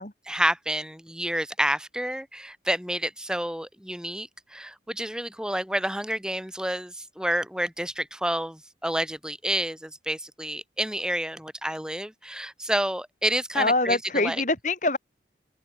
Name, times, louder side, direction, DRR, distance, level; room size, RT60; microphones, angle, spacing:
voice 1, 0.3-14.4, right 1 dB, 5° right, 4.9 m, -29 dB
voice 2, 13.5-15.0, left 2 dB, 45° left, 5.1 m, -24 dB
head